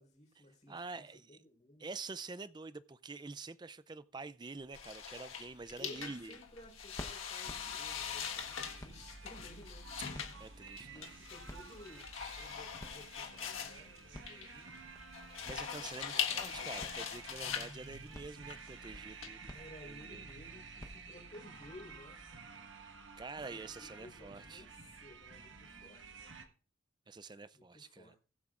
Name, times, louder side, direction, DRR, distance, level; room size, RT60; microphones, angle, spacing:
voice 1, 0.0-1.9 5.8-10.5 10.8-14.8 15.7-16.9 19.5-22.2 23.4-26.3 27.5-28.2, left 1 dB, 35° left, 4.0 m, -56 dB
voice 2, 0.7-1.4 1.8-6.4 10.4-11.1 15.4-19.5 19.8-20.3 23.2-24.7 27.1-28.2, right 3 dB, 20° right, 0.4 m, -47 dB
sound 1, 4.5-22.1, left 1 dB, 20° left, 0.9 m, -56 dB
sound 2, 4.7-19.3, left 7 dB, 85° left, 1.6 m, -42 dB
sound 3, 7.4-26.5, right 4 dB, 65° right, 1.4 m, -52 dB
21.0 x 7.8 x 2.5 m
head